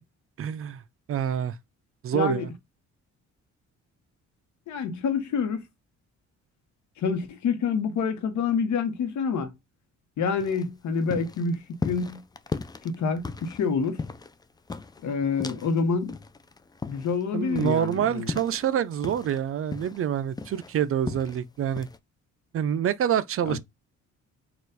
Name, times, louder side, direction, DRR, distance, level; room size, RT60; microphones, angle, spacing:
voice 1, 0.4-0.8 1.1-1.6 2.0-2.5 17.3-21.9 22.5-23.6, right 9 dB, 50° right, 0.4 m, -26 dB
voice 2, 2.1-2.5 4.7-5.6 7.0-9.5 10.2-12.2 12.8-14.0 15.0-16.2 16.9-18.3 23.5-23.6, left 5 dB, 70° left, 1.0 m, -27 dB
sound 1, 10.4-15.8 16.1-19.4 19.7-21.4 21.8-22.0, left 4 dB, 15° left, 0.4 m, -36 dB
4.3 x 2.5 x 3.9 m
cardioid pair, 90°, 30 cm